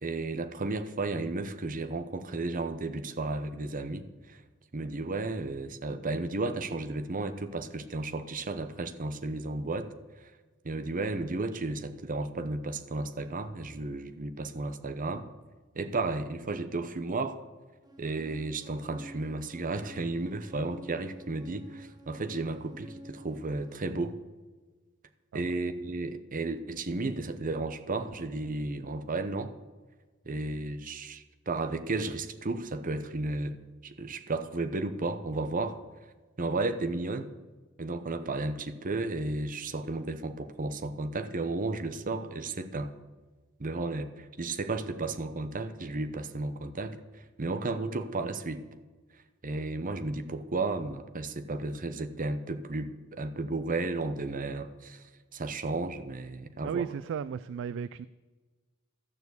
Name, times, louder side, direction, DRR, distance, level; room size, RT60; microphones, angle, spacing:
voice 1, 0.0-4.4 4.7-9.9 10.2-10.3 10.6-15.3 15.7-17.4 18.0-24.2 25.3-29.5 30.3-33.6 33.8-35.8 36.4-37.3 37.8-42.9 43.6-48.6 49.4-56.8, right 2 dB, 40° right, 0.8 m, -33 dB
sound 1, 17.9-23.8, right 1 dB, 20° right, 1.2 m, -50 dB
voice 2, 56.6-58.1, right 7 dB, 60° right, 0.3 m, -34 dB
13.0 x 7.1 x 8.0 m
head